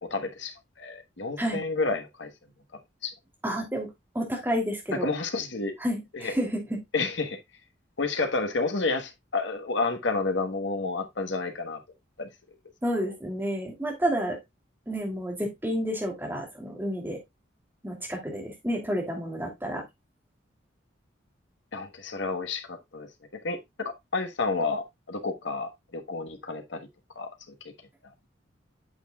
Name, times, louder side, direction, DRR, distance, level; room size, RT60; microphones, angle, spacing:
voice 1, 0.0-2.3 3.0-3.1 4.9-5.7 6.1-6.3 6.9-7.4 8.0-11.8 12.2-12.3 21.7-23.1 23.4-26.9 27.1-27.5, left 3 dB, 70° left, 1.3 m, -30 dB
voice 2, 3.4-3.9 4.1-5.1 5.8-6.6 12.8-14.4 14.9-17.2 17.8-19.8, equal, 10° right, 2.6 m, -30 dB
8.9 x 6.8 x 2.3 m
head